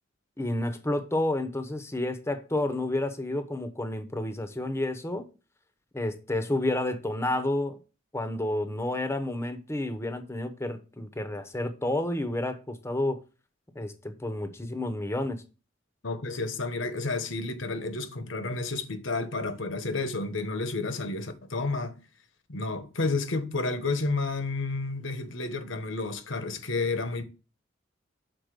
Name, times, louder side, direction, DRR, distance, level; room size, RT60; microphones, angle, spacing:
voice 1, 0.4-5.2 5.9-7.8 8.1-13.2 13.7-15.4, left 1 dB, 15° left, 0.9 m, -30 dB
voice 2, 16.0-22.0 22.5-27.2, left 3 dB, 75° left, 1.2 m, -31 dB
6.5 x 4.2 x 6.5 m
head